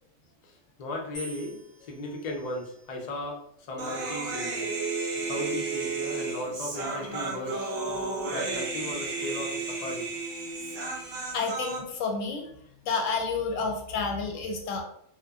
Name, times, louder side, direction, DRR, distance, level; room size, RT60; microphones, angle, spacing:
voice 1, 0.4-4.7 5.3-7.8 8.3-10.1, left 1 dB, 55° left, 0 dB, 0.4 m, -36 dB
sound 1, 1.1-3.4 4.2-4.7, equal, 35° left, 0.8 m, -48 dB
Human voice, 3.8-11.8, right 3 dB, 55° right, 0.7 m, -33 dB
voice 2, 11.3-12.5 12.8-14.8, left 4 dB, 90° left, 2 dB, 1.0 m, -30 dB
2.8 x 2.2 x 2.3 m, 0.71 s
omnidirectional pair, 1.3 m